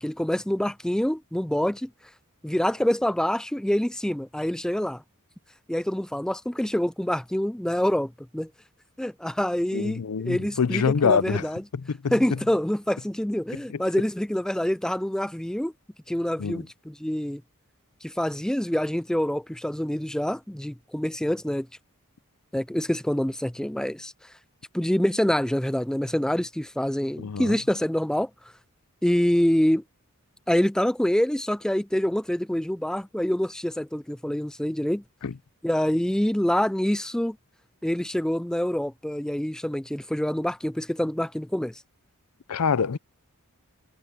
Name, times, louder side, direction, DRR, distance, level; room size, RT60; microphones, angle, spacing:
voice 1, 0.0-1.9 2.4-5.0 5.7-8.5 9.0-11.6 12.1-15.7 16.1-17.4 18.0-21.7 22.5-24.1 24.7-28.3 29.0-29.8 30.5-35.0 35.6-37.4 37.8-41.8, equal, 5° left, 0.3 m, -26 dB
voice 2, 9.7-11.5 11.7-12.2 16.4-16.6 27.2-27.6 35.2-35.3 42.5-43.0, left 6 dB, 85° left, 0.6 m, -25 dB
head